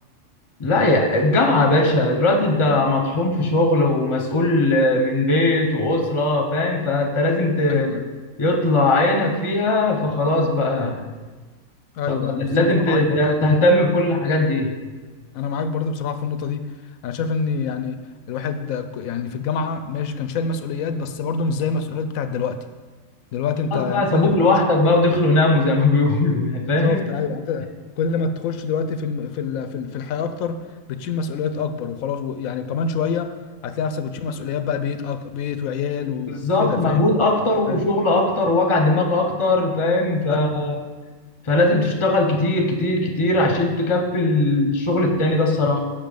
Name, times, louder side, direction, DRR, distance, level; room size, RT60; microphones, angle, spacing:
voice 1, 0.6-7.9 8.4-11.0 12.1-14.7 23.7-27.0 36.3-40.8 41.4-45.8, left 2 dB, 25° left, 3 dB, 0.8 m, -19 dB
voice 2, 7.7-8.0 11.9-13.2 15.3-16.6 17.0-18.0 18.3-22.6 23.3-24.6 26.8-27.7 28.0-30.6 30.9-33.3 33.6-37.1 37.7-37.8 40.3-40.4, left 5 dB, 85° left, 10 dB, 1.0 m, -26 dB
7.3 x 5.5 x 5.1 m, 1.3 s
omnidirectional pair, 1.4 m